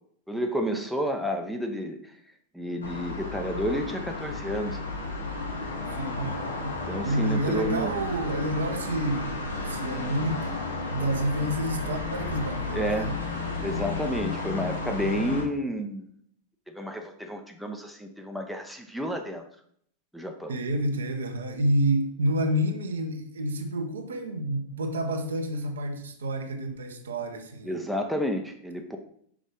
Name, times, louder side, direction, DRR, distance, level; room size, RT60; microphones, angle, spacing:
voice 1, 0.3-2.0 2.5-4.8 6.8-7.9 12.7-13.1 13.6-16.1 16.7-19.4 20.1-20.5 27.6-29.0, equal, ahead, 3 dB, 0.7 m, -30 dB
sound 1, 2.8-15.4, left 3 dB, 80° left, 1.3 m, -33 dB
voice 2, 5.9-6.8 7.0-10.6 10.9-13.2 20.5-27.7, right 1 dB, 70° right, 5 dB, 0.9 m, -29 dB
6.0 x 5.0 x 3.7 m, 0.64 s
figure-of-eight pair, 90°, 0 cm